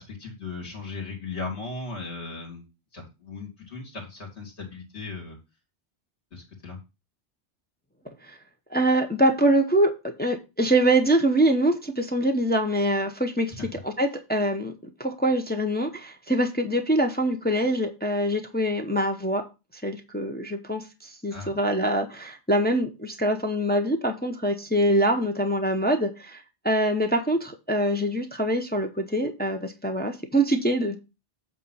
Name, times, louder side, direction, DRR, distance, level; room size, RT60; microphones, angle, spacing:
voice 1, 0.0-2.6 2.9-5.4 6.3-6.8 13.6-13.7 21.3-21.5, left 3 dB, 75° left, 1 dB, 3.2 m, -37 dB
voice 2, 8.7-13.5 13.8-14.7 15.0-19.4 19.8-31.0, right 1 dB, 10° left, 4 dB, 0.8 m, -24 dB
8.4 x 3.8 x 5.5 m, 0.27 s
omnidirectional pair, 1.2 m